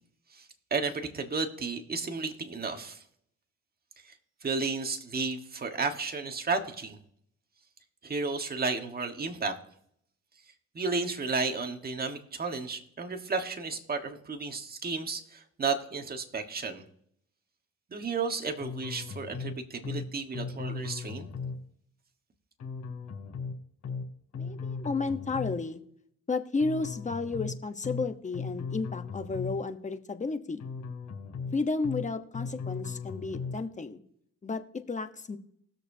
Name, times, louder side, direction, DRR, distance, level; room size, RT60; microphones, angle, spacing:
voice 1, 0.3-3.0 4.0-4.1 4.4-7.0 8.0-9.5 10.7-16.8 17.9-21.3, right 4 dB, 30° right, 5 dB, 1.4 m, -33 dB
sound 1, 18.6-19.5 19.8-20.1 20.3-21.6 22.6-23.5 23.8-24.1 24.3-25.6 26.6-27.5 27.8-28.1 28.3-29.6 30.6-31.5 31.8-32.1 32.3-33.6, left 5 dB, 70° left, 3.6 m, -37 dB
voice 2, 24.3-25.8 26.3-30.7 31.5-34.0 34.4-35.4, left 4 dB, 25° left, 8 dB, 1.0 m, -32 dB
19.5 x 6.7 x 2.8 m, 0.68 s
cardioid pair, 90°, 30 cm